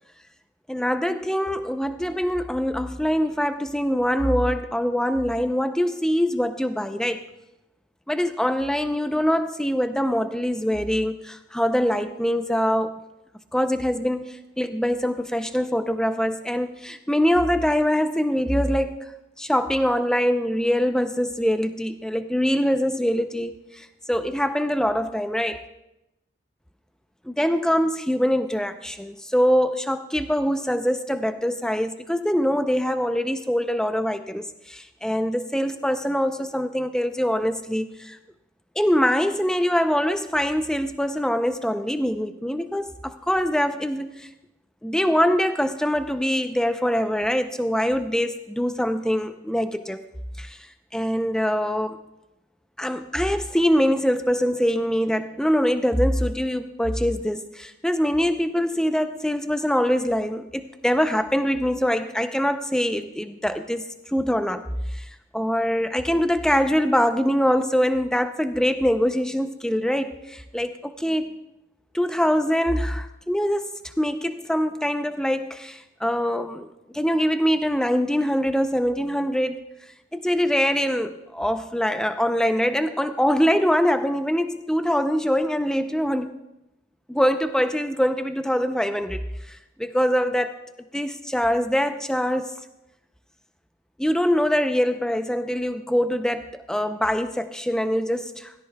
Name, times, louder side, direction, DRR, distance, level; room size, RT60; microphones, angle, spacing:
voice 1, 0.7-7.2 8.1-13.0 13.5-19.0 19.4-25.6 27.2-38.2 38.8-44.3 44.8-50.0 50.4-52.0 52.8-71.4 71.9-79.6 80.1-86.3 87.1-90.6 90.9-92.5 94.0-98.5, equal, 5° left, 9 dB, 0.4 m, -24 dB
17.0 x 16.0 x 2.2 m, 0.93 s
head